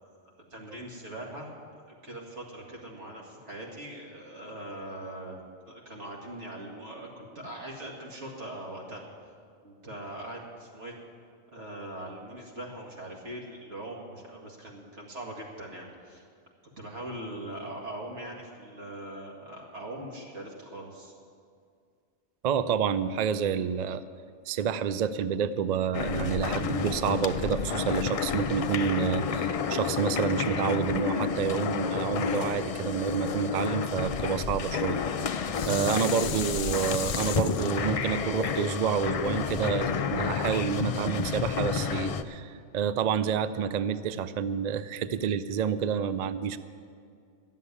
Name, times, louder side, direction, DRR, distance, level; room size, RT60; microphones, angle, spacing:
voice 1, 0.5-1.5 1.9-5.4 5.7-9.0 9.6-11.0 11.5-16.3 16.8-21.1, right 1 dB, 75° right, -2 dB, 2.4 m, -41 dB
voice 2, 22.4-24.0 24.5-35.0 35.3-46.6, right 7 dB, 60° right, 13 dB, 0.4 m, -29 dB
sound 1, 25.9-42.2, left 6 dB, 65° left, 0.3 m, -30 dB
Dishes pots and pans, 34.9-40.2 40.7-40.8, left 8 dB, 85° left, 0.9 m, -36 dB
12.5 x 7.5 x 9.7 m, 2.3 s
omnidirectional pair, 1.2 m